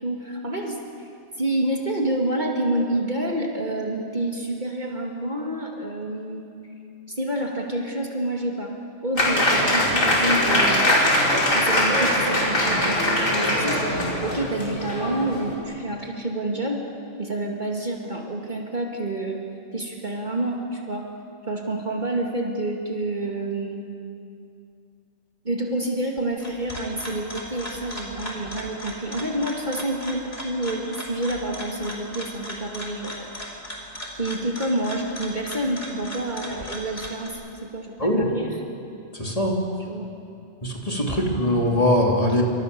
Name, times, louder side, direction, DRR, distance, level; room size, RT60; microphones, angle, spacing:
voice 1, 0.0-0.8 1.4-6.4 7.1-8.8 9.0-16.9 17.2-19.4 19.7-21.1 21.5-23.9 25.4-33.6 34.2-38.5 39.9-40.1 41.1-41.3, right 1 dB, 35° right, 0 dB, 2.6 m, -28 dB
Applause, 9.2-15.5, left 1 dB, 80° left, 5.4 m, -21 dB
Old clock, 26.2-37.3, equal, 50° left, 4.4 m, -37 dB
voice 2, 39.1-39.6 40.6-42.4, left 1 dB, 25° left, -1 dB, 3.2 m, -22 dB
28.0 x 25.0 x 7.0 m, 2.5 s
omnidirectional pair, 1.4 m